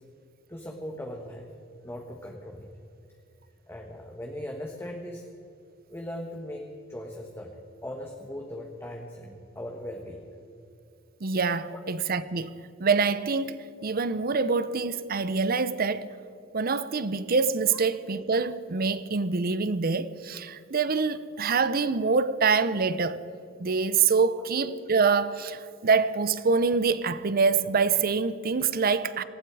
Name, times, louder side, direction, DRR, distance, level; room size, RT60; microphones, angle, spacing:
voice 1, 0.5-1.5 1.8-2.7 3.7-5.3 5.9-10.3 11.6-11.8, left 1 dB, 10° left, 1.4 m, -39 dB
voice 2, 11.2-12.5 12.8-16.1 16.5-23.2 23.6-29.2, right 4 dB, 50° right, 0.7 m, -25 dB
18.5 x 16.0 x 4.8 m
head